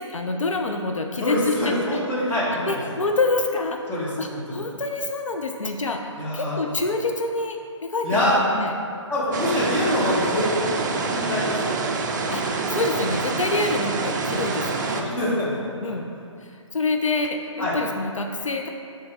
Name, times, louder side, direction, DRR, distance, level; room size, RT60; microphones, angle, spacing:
voice 1, 0.0-1.7 2.6-3.8 4.2-6.0 6.3-8.7 12.3-15.0 15.8-16.1 16.4-18.7, left 3 dB, 85° left, 4 dB, 0.5 m, -27 dB
voice 2, 1.2-2.8 3.9-4.6 6.2-6.6 8.0-8.4 9.1-11.8 14.9-16.0 17.6-17.8, left 1 dB, 15° left, -8 dB, 1.4 m, -25 dB
sound 1, 9.3-15.0, right 4 dB, 35° right, 0.5 m, -26 dB
8.9 x 3.9 x 3.5 m, 2.4 s
figure-of-eight pair, 140°, 16 cm